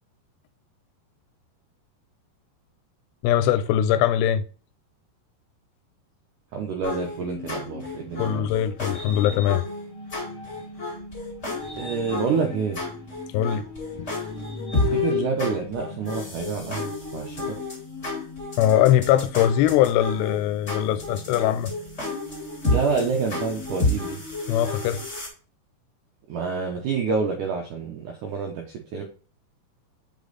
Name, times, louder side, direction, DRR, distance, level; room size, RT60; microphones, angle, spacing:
voice 1, 3.2-4.4 8.2-9.6 13.3-13.6 14.0-14.1 18.6-21.7 24.5-25.0, left 11 dB, 85° left, 2.7 m, -21 dB
voice 2, 6.5-8.5 11.8-12.8 14.7-17.6 22.7-24.2 26.3-29.0, right 5 dB, 85° right, 1.8 m, -28 dB
sound 1, 6.8-25.3, left 2 dB, 20° left, 2.5 m, -31 dB
sound 2, 7.7-10.9 11.4-16.6, left 7 dB, 45° left, 2.6 m, -36 dB
5.9 x 5.2 x 4.0 m
omnidirectional pair, 4.9 m